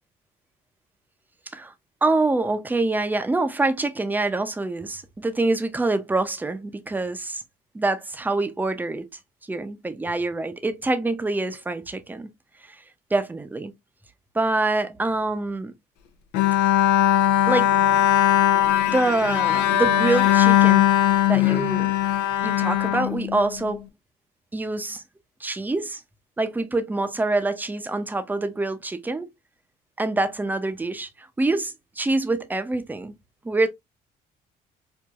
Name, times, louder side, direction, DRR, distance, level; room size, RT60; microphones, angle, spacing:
voice 1, 2.0-7.4 7.7-9.1 9.5-12.3 12.6-12.8 13.1-13.7 14.3-15.7 17.5-17.7 18.8-20.9 21.3-21.9 22.4-23.8 24.5-25.0 25.4-26.0 26.4-29.3 30.0-33.2 33.4-33.7, right 2 dB, 10° right, 0.6 m, -25 dB
Bowed string instrument, 16.3-23.7, left 12 dB, 90° left, 0.7 m, -19 dB
4.6 x 2.5 x 2.4 m
cardioid pair, 110°, 17 cm